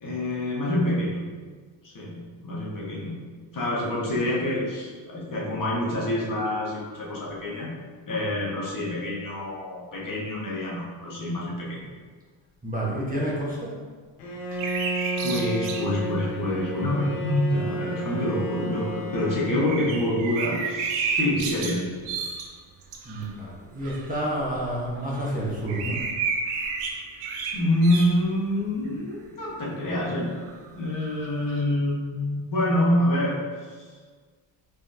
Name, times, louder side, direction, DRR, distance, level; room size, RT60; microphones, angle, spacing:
voice 1, 0.0-1.2 1.8-3.1 3.5-7.7 8.1-11.9 15.1-21.8 27.5-30.3 30.7-33.4 33.7-33.9, left 1 dB, 40° left, -5 dB, 1.4 m, -26 dB
voice 2, 12.6-13.7 23.0-26.0, right 1 dB, 15° right, -6 dB, 1.2 m, -29 dB
Bowed string instrument, 14.2-20.5, right 1 dB, 85° left, 0.9 m, -33 dB
sound 1, 14.5-15.9 16.4-16.5 19.5-23.3 23.8-28.3 28.8-28.9 30.4-31.6, right 5 dB, 85° right, 0.7 m, -31 dB
4.3 x 3.4 x 2.7 m, 1.5 s
supercardioid pair, 70°, 50 cm